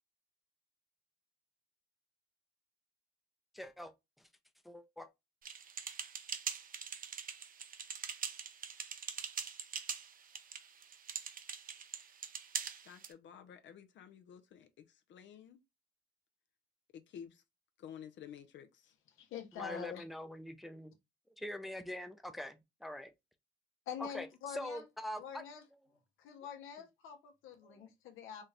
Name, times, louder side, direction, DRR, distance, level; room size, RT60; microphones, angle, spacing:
voice 1, 3.5-3.9 4.6-5.1 19.6-20.9 21.4-23.1 24.1-25.4 27.6-27.8, left 1 dB, ahead, 0.5 m, -44 dB
sound 1, 5.4-13.1, right 7 dB, 45° right, 0.6 m, -43 dB
voice 2, 12.8-15.6 16.9-17.4 17.8-18.9, left 8 dB, 70° left, 0.6 m, -52 dB
voice 3, 19.2-20.0 23.9-24.8 25.2-25.6 26.2-28.4, left 8 dB, 85° left, 1.0 m, -45 dB
4.2 x 2.4 x 3.3 m
cardioid pair, 90°, 20 cm